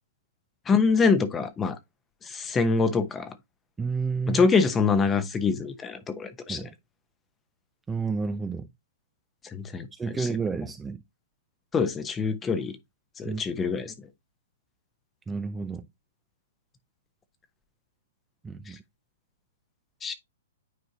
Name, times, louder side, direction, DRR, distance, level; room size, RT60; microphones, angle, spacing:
voice 1, 0.7-1.8 2.2-3.3 4.3-6.7 9.5-9.9 10.2-10.3 11.7-12.8 13.2-13.9 20.0-20.1, left 5 dB, 15° left, 0.9 m, -25 dB
voice 2, 3.8-4.5 6.5-6.7 7.9-8.7 9.9-11.0 13.2-13.4 15.3-15.9 18.4-18.8, right 5 dB, 10° right, 0.6 m, -30 dB
9.4 x 4.5 x 2.8 m
hypercardioid pair, 135°, 0 cm